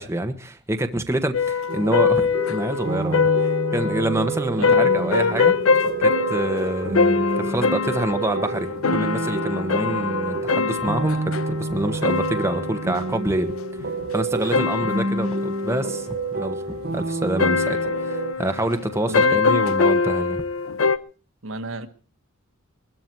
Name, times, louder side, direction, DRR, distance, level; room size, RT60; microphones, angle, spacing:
voice 1, 0.0-5.6 6.0-13.5 14.1-20.4, right 1 dB, 15° right, 6 dB, 1.3 m, -27 dB
sound 1, 1.3-21.0, left 5 dB, 85° left, 0.9 m, -24 dB
sound 2, 1.7-18.3, right 2 dB, 55° right, 1.3 m, -29 dB
Wind instrument woodwind instrument, 2.3-8.7, right 1 dB, 25° left, 3.0 m, -38 dB
voice 2, 4.6-5.0 19.1-19.4 21.4-21.9, right 2 dB, 75° right, 7 dB, 1.7 m, -31 dB
22.0 x 13.0 x 4.6 m, 0.37 s
head